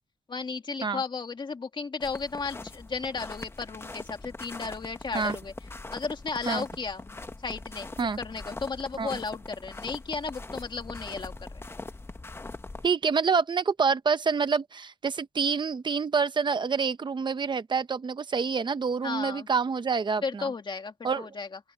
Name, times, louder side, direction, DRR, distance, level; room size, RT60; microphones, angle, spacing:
voice 1, 0.3-5.5 5.9-11.6 19.0-19.5 20.2-21.6, left 4 dB, 35° left, 2.1 m, -34 dB
sound 1, 2.0-12.9, left 2 dB, 15° left, 1.0 m, -41 dB
voice 2, 12.8-20.5 21.0-21.3, right 5 dB, 35° right, 0.9 m, -27 dB
open air
wide cardioid pair, 175°, 14 cm